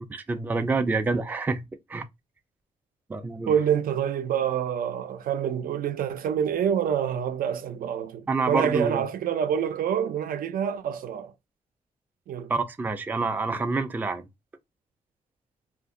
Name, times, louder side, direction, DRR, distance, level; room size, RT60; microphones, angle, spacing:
voice 1, 0.1-1.6 1.9-2.0 3.1-3.5 8.3-9.0 12.5-14.2, right 3 dB, 15° right, 0.3 m, -27 dB
voice 2, 3.5-11.3 12.3-12.5, right 8 dB, 85° right, 0.6 m, -27 dB
2.8 x 2.5 x 3.7 m
wide cardioid pair, 165°, 14 cm